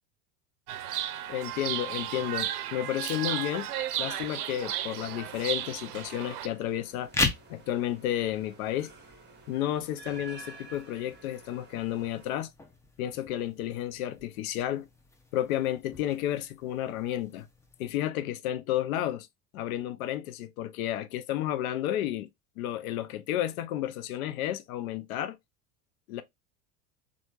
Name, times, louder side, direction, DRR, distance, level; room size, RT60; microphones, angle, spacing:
Chirp tweet, 0.7-6.5, right 11 dB, 75° right, 0.5 m, -34 dB
voice 1, 1.3-3.7 4.0-7.1 7.5-8.9 9.5-12.5 13.0-14.9 15.3-17.5 17.8-19.3 19.5-22.3 22.6-25.4 26.1-26.2, left 12 dB, 70° left, 0.6 m, -32 dB
sound 1, 5.0-12.3, right 3 dB, 25° right, 0.9 m, -51 dB
sound 2, 7.0-18.0, left 3 dB, 5° left, 0.4 m, -39 dB
3.0 x 2.4 x 2.4 m
hypercardioid pair, 80°, 45 cm